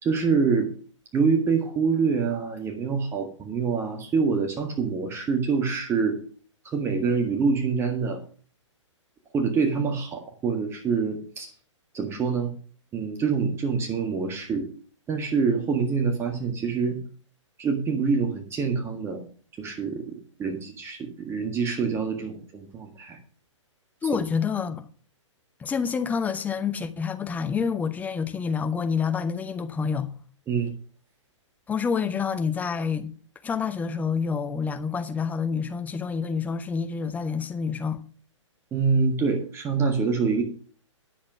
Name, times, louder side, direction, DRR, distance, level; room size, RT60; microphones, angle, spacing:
voice 1, 0.0-0.7 1.1-6.2 6.6-8.2 9.3-11.5 11.9-12.5 12.9-14.7 15.1-17.0 17.6-19.2 19.6-23.2 30.5-30.7 38.7-40.4, right 5 dB, 15° right, 1.7 m, -25 dB
voice 2, 24.0-24.8 25.6-30.1 31.7-33.1 33.4-38.0, left 6 dB, 10° left, 0.8 m, -28 dB
10.5 x 7.4 x 6.0 m
figure-of-eight pair, 115°, 16 cm